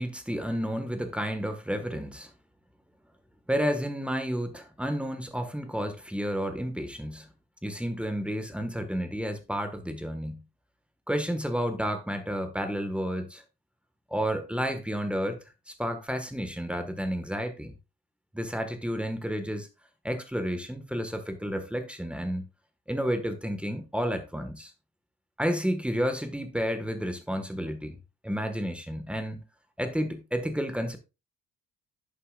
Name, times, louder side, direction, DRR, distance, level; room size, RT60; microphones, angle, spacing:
voice 1, 0.0-2.3 3.5-7.3 7.6-10.4 11.1-13.4 14.1-15.4 15.7-17.7 18.3-19.7 20.0-22.5 22.9-24.7 25.4-28.0 28.2-29.4 29.8-31.0, equal, 5° right, 1.6 m, -31 dB
11.0 x 7.1 x 2.5 m
cardioid pair, 90°, 30 cm